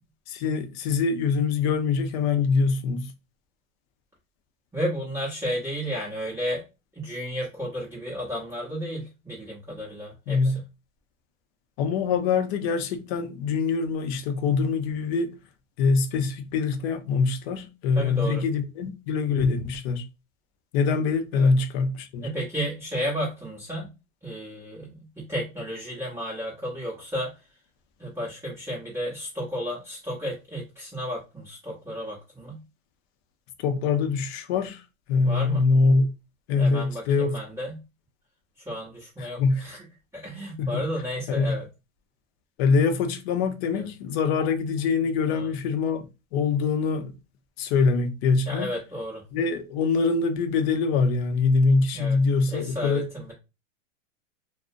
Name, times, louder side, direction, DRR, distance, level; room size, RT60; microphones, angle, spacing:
voice 1, 0.3-3.1 10.3-10.6 11.8-15.3 15.8-20.1 20.7-22.3 33.6-34.8 35.1-36.1 36.5-37.4 39.2-39.6 40.6-40.9 41.3-41.6 42.6-46.1 46.3-47.1 47.6-48.7 49.3-53.1, left 4 dB, 50° left, 0.5 m, -24 dB
voice 2, 4.7-6.6 6.9-10.5 17.9-18.4 21.3-21.5 22.2-23.9 24.2-27.4 28.0-32.6 35.2-35.6 36.6-37.8 38.6-39.8 40.1-41.7 43.7-43.8 45.3-45.5 48.5-49.2 51.9-52.2 52.5-53.3, equal, 5° right, 0.8 m, -33 dB
2.4 x 2.0 x 2.5 m
supercardioid pair, 135°, 40 cm